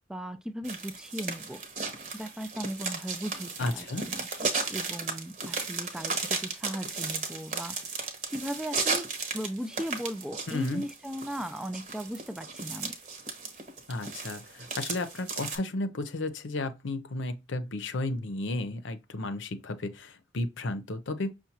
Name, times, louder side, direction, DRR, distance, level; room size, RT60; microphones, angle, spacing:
voice 1, 0.1-1.6 2.1-4.3 4.7-7.7 8.3-9.1 9.3-13.0, equal, 5° right, 0.3 m, -37 dB
sound 1, 0.6-15.6, right 4 dB, 40° right, 0.9 m, -35 dB
voice 2, 3.6-4.1 10.5-10.8 13.9-21.3, left 2 dB, 85° left, 0.7 m, -33 dB
5.8 x 2.3 x 2.8 m
head